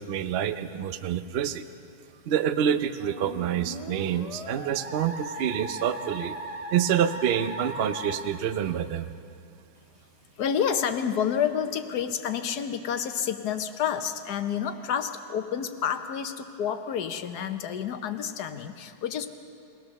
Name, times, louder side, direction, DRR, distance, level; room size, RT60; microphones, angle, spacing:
voice 1, 0.0-1.6 2.3-6.4 6.7-9.1, right 9 dB, 65° right, 10 dB, 0.6 m, -27 dB
Musical instrument, 3.0-8.2, right 1 dB, 20° right, 1.8 m, -38 dB
voice 2, 10.4-19.3, left 8 dB, 65° left, 8 dB, 1.4 m, -29 dB
22.5 x 17.5 x 6.5 m, 2.6 s
omnidirectional pair, 1.9 m